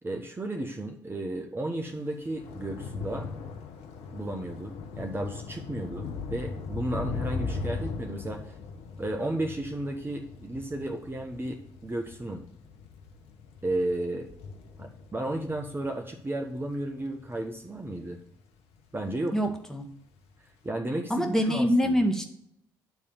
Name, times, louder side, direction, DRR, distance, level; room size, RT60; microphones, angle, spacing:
voice 1, 0.0-3.3 4.1-8.5 9.0-12.4 13.6-14.3 14.8-18.2 18.9-19.3 20.6-22.0, right 1 dB, 20° right, 2 dB, 1.2 m, -33 dB
Thunder / Rain, 1.8-18.4 18.7-19.2 19.5-19.6, left 4 dB, 70° left, 1.0 m, -39 dB
voice 2, 19.3-19.9 21.1-22.2, equal, 5° left, 4 dB, 1.6 m, -25 dB
9.5 x 3.4 x 6.9 m, 0.71 s
hypercardioid pair, 45°, 10 cm